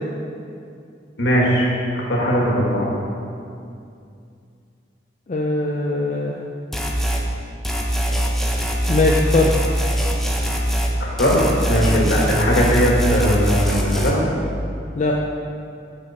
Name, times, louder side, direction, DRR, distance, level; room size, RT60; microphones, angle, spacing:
voice 1, 1.2-2.9 11.0-11.4 11.7-14.1, equal, 65° left, -3 dB, 1.7 m, -19 dB
voice 2, 5.3-6.4 8.9-9.5 11.9-12.2 15.0-15.2, left 2 dB, 40° left, -1 dB, 0.5 m, -20 dB
sound 1, 6.7-7.2 7.6-10.9 11.2-14.1, equal, ahead, 0.7 m, -22 dB
7.6 x 6.9 x 4.2 m, 2.5 s
head